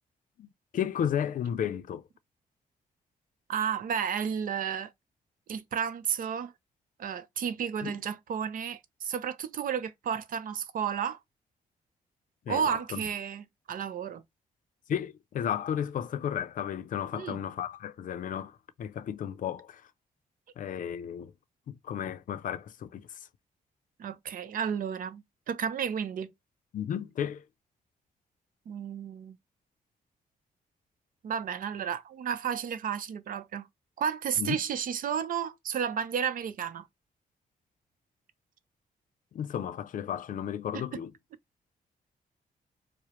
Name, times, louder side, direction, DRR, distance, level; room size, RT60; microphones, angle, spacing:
voice 1, 0.4-2.1 7.8-8.0 12.5-13.0 14.9-19.9 20.6-21.3 21.7-23.3 26.7-27.5 34.4-34.6 39.3-41.1, left 9 dB, 60° left, 0.4 m, -33 dB
voice 2, 3.5-4.9 5.5-6.5 7.0-11.2 12.5-14.2 17.1-17.4 24.0-26.3 28.7-29.4 31.2-33.7 34.0-36.9, right 8 dB, 65° right, 0.6 m, -32 dB
4.7 x 2.0 x 3.0 m
cardioid pair, 120°, 15 cm